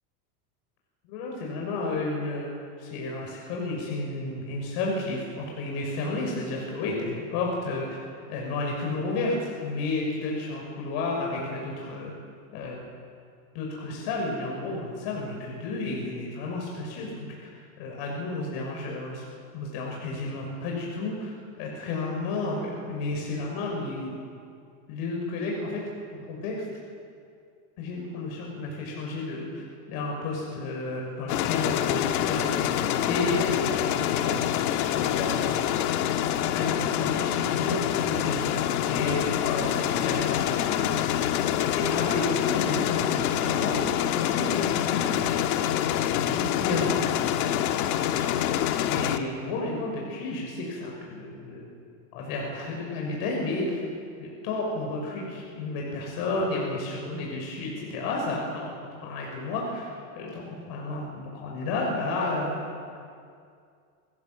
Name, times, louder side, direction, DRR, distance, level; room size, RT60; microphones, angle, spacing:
voice 1, 1.1-2.5 2.8-8.0 8.3-12.1 12.5-12.8 13.5-19.2 19.5-24.1 24.9-25.8 26.1-26.7 27.8-35.5 36.5-41.1 41.7-45.4 45.8-47.7 48.8-51.7 52.1-53.8 54.2-58.7 59.0-62.7, left 2 dB, 50° left, -1 dB, 6.3 m, -32 dB
sound 1, 31.3-49.2, left 11 dB, 70° left, 1.7 m, -26 dB
29.0 x 20.0 x 7.9 m, 2.3 s
supercardioid pair, 165°, 46 cm